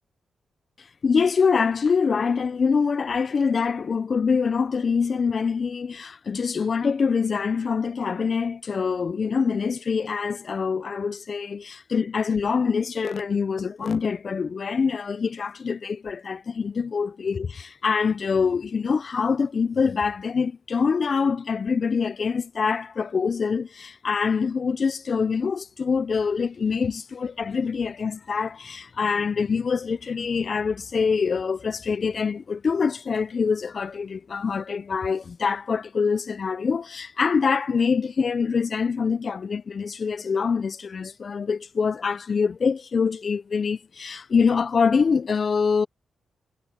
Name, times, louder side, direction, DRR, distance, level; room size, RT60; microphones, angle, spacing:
voice 1, 1.0-45.9, left 5 dB, 40° left, 0.4 m, -25 dB
wide cardioid pair, 150°, 0 cm